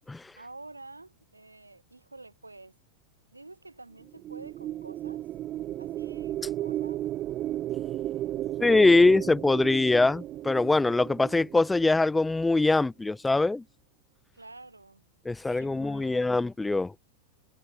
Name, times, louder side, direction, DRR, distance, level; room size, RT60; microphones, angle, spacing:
voice 1, 0.4-2.8 3.3-5.2 5.8-7.0 14.3-15.0 15.5-16.5, right 2 dB, 80° right, 5.5 m, -49 dB
sound 1, 4.0-12.5, right 13 dB, 35° right, 1.2 m, -34 dB
voice 2, 8.6-13.6 15.2-16.9, left 2 dB, 10° left, 1.0 m, -23 dB
figure-of-eight pair, 90°, 0 cm